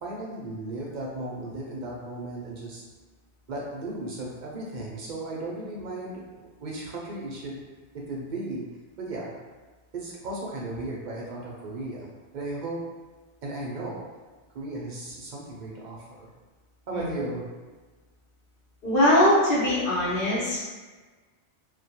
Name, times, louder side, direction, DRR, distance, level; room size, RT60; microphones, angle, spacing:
voice 1, 0.0-2.8 3.5-7.6 7.9-8.6 9.0-9.3 9.9-12.8 13.4-14.0 14.5-16.3 16.9-17.4, right 2 dB, 55° right, -4 dB, 0.5 m, -35 dB
voice 2, 18.8-20.6, left 1 dB, 55° left, -8 dB, 1.0 m, -21 dB
2.3 x 2.1 x 2.7 m, 1.3 s
omnidirectional pair, 1.2 m